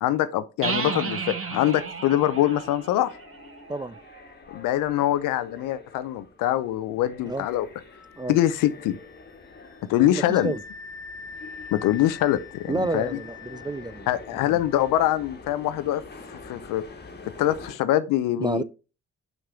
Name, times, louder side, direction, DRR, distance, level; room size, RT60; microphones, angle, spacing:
voice 1, 0.0-3.1 4.5-7.7 8.3-9.0 9.9-10.5 11.7-13.2 14.1-16.0 16.3-16.8 17.4-18.6, left 13 dB, 80° left, 0.6 m, -24 dB
sound 1, 0.6-4.3, right 5 dB, 45° right, 1.3 m, -33 dB
sound 2, 1.8-17.7, left 3 dB, 30° left, 1.5 m, -47 dB
Wind instrument woodwind instrument, 7.9-15.3, left 5 dB, 50° left, 1.2 m, -45 dB
voice 2, 10.0-10.6 12.7-14.1 14.5-14.6 18.4-18.6, right 2 dB, 15° right, 0.3 m, -30 dB
5.7 x 5.3 x 3.6 m
supercardioid pair, 45°, 32 cm